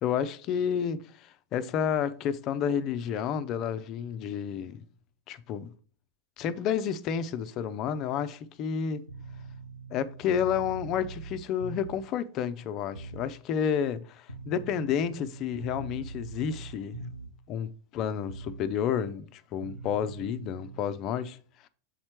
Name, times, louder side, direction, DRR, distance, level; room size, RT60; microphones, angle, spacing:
voice 1, 0.0-4.9 5.3-5.7 6.4-9.0 9.9-17.0 17.5-21.4 21.6-21.7, left 8 dB, 35° left, 0.6 m, -30 dB
sound 1, 9.1-12.1 12.9-13.3 14.3-17.5 18.3-18.7 19.6-20.8, right 3 dB, 90° left, 0.5 m, -42 dB
7.2 x 4.3 x 4.4 m
figure-of-eight pair, 90°, 0 cm